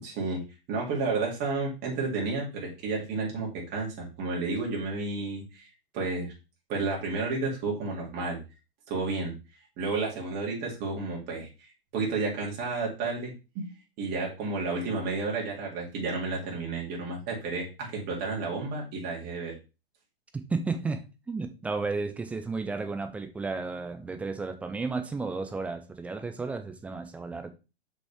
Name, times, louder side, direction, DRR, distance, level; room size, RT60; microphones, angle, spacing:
voice 1, 0.0-0.4 0.7-5.7 5.9-6.3 6.7-8.4 8.9-9.3 9.8-13.7 14.0-19.5, right 3 dB, 30° right, 3.5 m, -31 dB
voice 2, 20.3-21.0 21.3-27.5, right 4 dB, 5° right, 0.4 m, -33 dB
6.1 x 5.5 x 3.6 m
hypercardioid pair, 125°, 31 cm